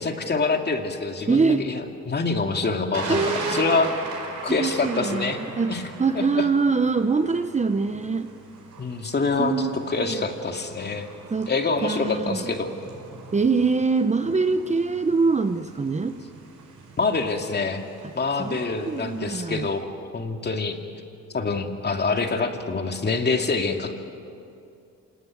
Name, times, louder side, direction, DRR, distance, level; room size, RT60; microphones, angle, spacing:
voice 1, 0.0-3.9 4.4-5.4 5.7-5.8 6.1-6.5 8.8-11.1 11.5-12.7 17.0-17.8 18.2-19.9 20.1-20.8 21.3-23.9, left 4 dB, 35° left, 4 dB, 2.5 m, -26 dB
voice 2, 1.3-1.7 3.1-3.8 4.5-8.3 9.4-10.3 11.3-11.5 11.8-12.5 13.3-16.2 18.0-18.1 18.4-19.7, right 4 dB, 25° right, 9 dB, 0.9 m, -24 dB
Thunder, 2.9-19.2, right 3 dB, 85° right, 6.0 m, -40 dB
27.5 x 19.5 x 9.3 m, 2.5 s
cardioid pair, 90°, 30 cm